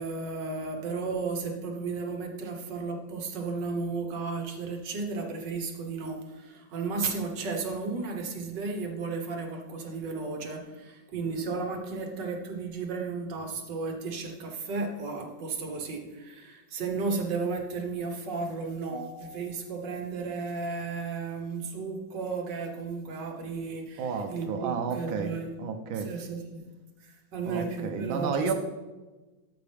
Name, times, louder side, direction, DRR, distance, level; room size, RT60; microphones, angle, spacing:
voice 1, 0.0-25.5 25.9-26.6 27.0-28.5, right 4 dB, 65° right, 3 dB, 1.9 m, -34 dB
voice 2, 24.0-25.3 25.6-26.1 27.4-28.5, right 6 dB, 85° right, 5 dB, 1.6 m, -31 dB
13.0 x 7.4 x 3.4 m, 1.2 s
omnidirectional pair, 2.1 m